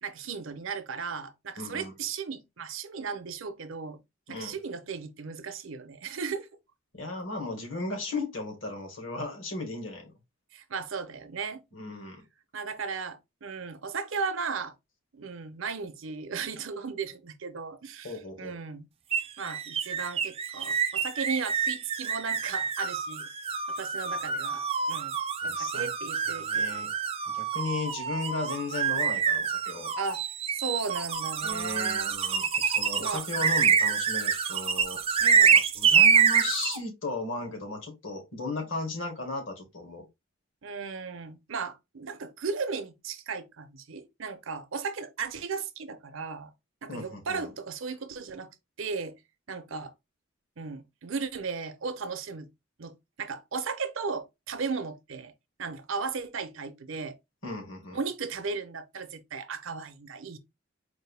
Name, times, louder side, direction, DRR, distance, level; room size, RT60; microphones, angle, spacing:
voice 1, 0.0-4.0 4.3-6.5 10.5-11.6 12.5-14.7 15.1-18.9 19.4-23.3 23.7-25.2 25.4-26.8 30.0-30.2 30.5-32.2 33.0-33.2 35.2-35.6 40.6-46.5 46.8-48.5 48.8-49.1 49.5-49.9 50.6-52.5 52.8-52.9 53.2-55.3 55.6-57.2 57.9-60.4, right 5 dB, 70° right, 0.6 m, -36 dB
voice 2, 1.6-1.9 4.3-4.5 6.9-10.1 11.7-12.2 18.0-18.6 25.4-25.9 26.3-26.9 27.3-29.9 31.4-35.2 35.5-40.0 46.9-47.5 57.4-58.0, left 3 dB, 65° left, 1.7 m, -36 dB
sound 1, 19.1-36.8, right 6 dB, 25° right, 0.3 m, -26 dB
4.5 x 2.6 x 3.3 m
head